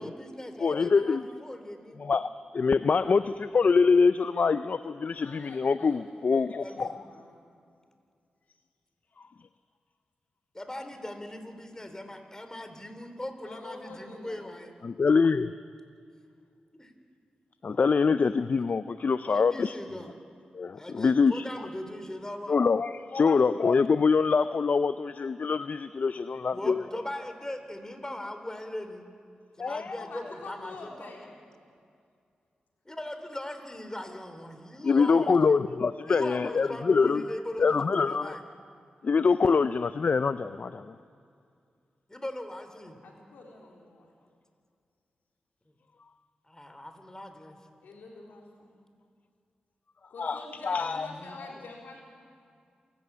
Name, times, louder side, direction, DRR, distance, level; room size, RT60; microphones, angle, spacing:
voice 1, 0.0-2.0 6.6-6.9 10.5-14.7 16.8-16.9 19.3-20.2 20.8-22.6 26.5-29.0 29.6-31.1 32.9-35.6 36.1-38.4 42.1-43.0 46.5-47.6 50.8-51.3, left 1 dB, 20° left, 7 dB, 3.5 m, -40 dB
voice 2, 0.6-1.4 2.0-6.9 14.8-15.5 17.6-19.8 20.5-21.5 22.5-26.8 29.6-30.0 34.8-37.2 37.6-38.4 39.0-40.9 50.2-51.1, left 5 dB, 60° left, 13 dB, 0.5 m, -25 dB
voice 3, 5.1-7.5 13.4-14.5 30.0-31.4 43.0-44.1 47.8-48.7 50.1-52.0, left 3 dB, 85° left, -1 dB, 3.9 m, -47 dB
27.5 x 12.5 x 8.6 m, 2.3 s
supercardioid pair, 40°, 3 cm